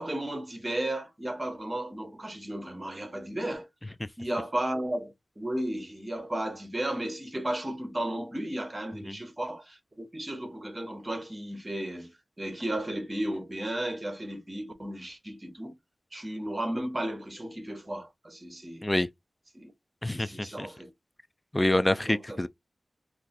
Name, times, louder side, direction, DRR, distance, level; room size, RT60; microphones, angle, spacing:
voice 1, 0.0-3.7 4.2-15.7 16.1-18.9 19.5-19.7 20.1-20.9 22.1-22.4, right 1 dB, 25° right, 1.1 m, -34 dB
voice 2, 20.0-20.7 21.5-22.5, left 1 dB, 20° left, 0.4 m, -26 dB
2.6 x 2.4 x 4.0 m
wide cardioid pair, 70°, 0 cm